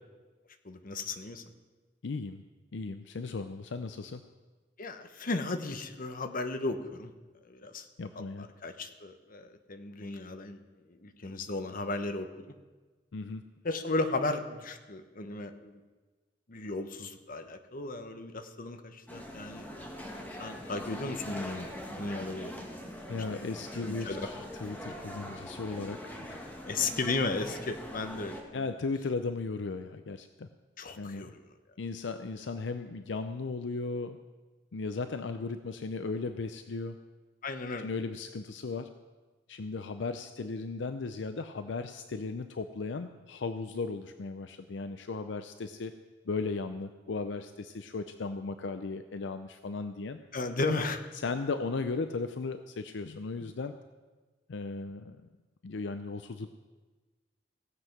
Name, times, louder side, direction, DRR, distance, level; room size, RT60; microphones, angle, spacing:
voice 1, 0.6-1.4 4.8-7.1 7.4-7.9 8.4-10.6 10.9-12.5 13.6-15.8 16.5-19.7 20.4-22.7 23.3-23.4 23.9-24.3 26.6-28.7 30.8-31.4 37.4-37.9 50.3-51.0, left 3 dB, 50° left, 8 dB, 0.9 m, -35 dB
voice 2, 2.0-2.4 2.7-4.2 8.0-8.5 13.1-13.4 23.1-26.6 28.5-30.5 31.0-31.3 31.8-34.2 34.7-37.0 37.8-38.9 39.5-45.9 46.3-50.2 51.2-53.7 54.5-55.2 55.6-56.5, left 3 dB, 70° left, 9 dB, 0.5 m, -36 dB
sound 1, 19.1-28.4, equal, 10° left, 1.6 m, -43 dB
17.0 x 7.8 x 5.9 m, 1.3 s
head